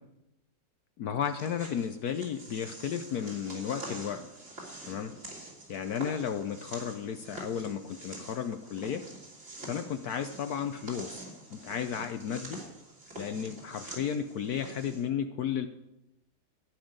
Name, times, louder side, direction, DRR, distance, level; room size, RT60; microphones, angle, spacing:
voice 1, 1.0-4.2 4.8-5.1 5.7-9.0 9.6-11.2 11.5-12.6 13.2-15.7, left 8 dB, 65° left, 8 dB, 1.1 m, -33 dB
sound 1, 1.2-15.0, right 2 dB, 45° right, 3.6 m, -46 dB
14.5 x 5.9 x 8.7 m, 0.88 s
omnidirectional pair, 1.9 m